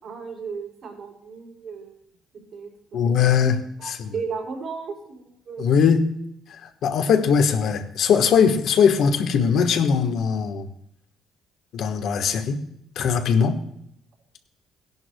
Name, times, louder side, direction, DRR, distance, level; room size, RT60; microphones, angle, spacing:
voice 1, 0.0-2.0 2.5-3.0 3.8-5.9, right 5 dB, 60° right, -2 dB, 4.5 m, -35 dB
voice 2, 2.9-4.1 5.6-6.0 6.5-10.7 11.7-12.6 12.9-13.6, left 6 dB, 65° left, 6 dB, 1.3 m, -20 dB
17.0 x 11.0 x 2.3 m, 0.75 s
cardioid pair, 85°, 0 cm